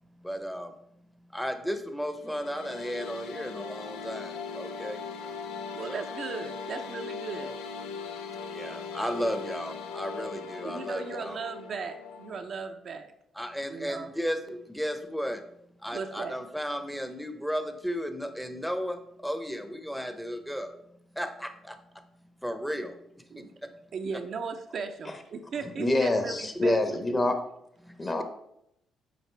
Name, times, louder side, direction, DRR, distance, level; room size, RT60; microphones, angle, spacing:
voice 1, 0.2-0.7 1.3-5.1 5.9-6.0 8.5-11.4 13.3-15.4 15.8-20.7 21.1-21.8 22.4-23.0 23.4-23.7 27.8-28.2, equal, ahead, 8 dB, 0.8 m, -34 dB
sound 1, 2.2-12.3, left 5 dB, 90° left, 0.5 m, -39 dB
voice 2, 5.8-7.5 10.6-13.1 13.7-14.1 15.9-16.4 23.3-23.5 23.9-26.8, right 5 dB, 60° right, 6 dB, 0.6 m, -37 dB
voice 3, 25.6-27.4 28.0-28.2, left 2 dB, 30° left, 6 dB, 1.1 m, -26 dB
7.6 x 4.8 x 3.4 m, 0.79 s
supercardioid pair, 65°, 0 cm